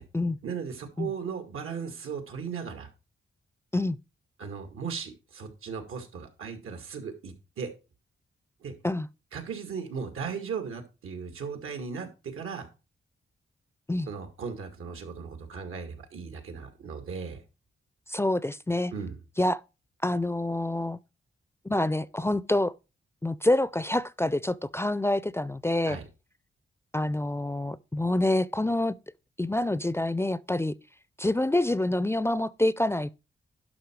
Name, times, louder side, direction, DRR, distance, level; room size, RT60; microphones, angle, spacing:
voice 1, 0.4-2.9 4.4-7.7 8.6-8.7 9.3-12.7 14.1-17.4 18.9-19.2 25.9-26.0, right 6 dB, 85° right, 2.2 m, -37 dB
voice 2, 18.1-18.9 19.4-19.6 20.0-21.0 21.7-22.7 23.2-26.0 26.9-28.9 29.4-30.7 31.2-33.2, left 1 dB, 10° left, 0.4 m, -27 dB
11.5 x 5.6 x 4.6 m
cardioid pair, 90°, 21 cm